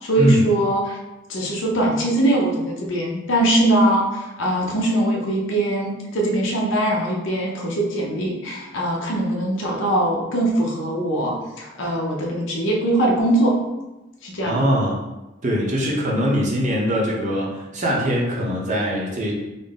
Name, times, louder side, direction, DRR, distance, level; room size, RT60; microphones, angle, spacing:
voice 1, 0.0-1.0 1.3-13.5 14.2-14.6, right 1 dB, 60° left, -2 dB, 0.8 m, -21 dB
voice 2, 14.4-15.0 15.4-19.3, equal, 35° right, -3 dB, 0.8 m, -22 dB
4.0 x 2.1 x 3.6 m, 1.0 s
head